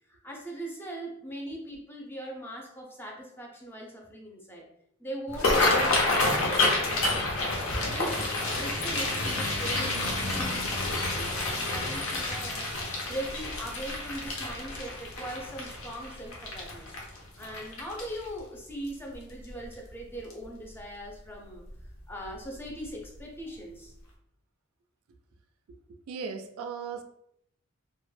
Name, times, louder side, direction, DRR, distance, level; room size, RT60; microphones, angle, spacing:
voice 1, 0.1-4.7 5.0-7.3 7.8-12.7 13.0-16.9 17.4-21.6 22.1-23.9, right 1 dB, 10° left, 0 dB, 0.4 m, -40 dB
sound 1, 5.3-18.4 18.9-19.1 19.5-19.9 20.3-20.5 21.7-21.9 22.2-22.4 22.8-22.9, left 2 dB, 70° left, 0.6 m, -29 dB
voice 2, 25.9-27.0, right 5 dB, 85° right, 6 dB, 0.3 m, -37 dB
2.1 x 2.0 x 3.1 m, 0.75 s
head